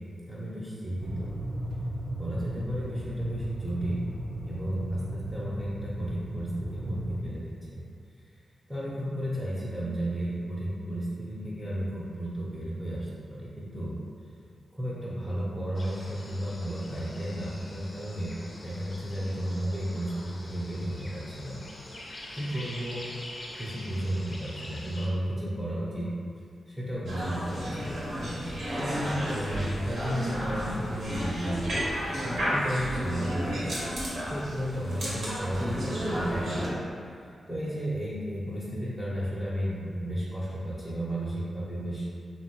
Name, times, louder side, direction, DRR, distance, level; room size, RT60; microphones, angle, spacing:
voice 1, 0.3-1.3 2.1-4.0 4.5-7.8 8.7-14.0 14.7-18.3 18.6-21.6 22.3-23.1 23.6-26.1 26.7-28.0 28.8-31.6 32.5-33.7 34.3-36.8 37.5-42.0, right 1 dB, 5° right, -9 dB, 0.6 m, -33 dB
sound 1, 1.0-7.2, right 1 dB, 55° right, 0.4 m, -36 dB
sound 2, 15.8-25.1, left 1 dB, 45° left, 0.5 m, -45 dB
sound 3, 27.1-36.7, equal, 80° right, 0.8 m, -32 dB
2.9 x 2.1 x 2.8 m, 2.4 s
cardioid pair, 65°, 0 cm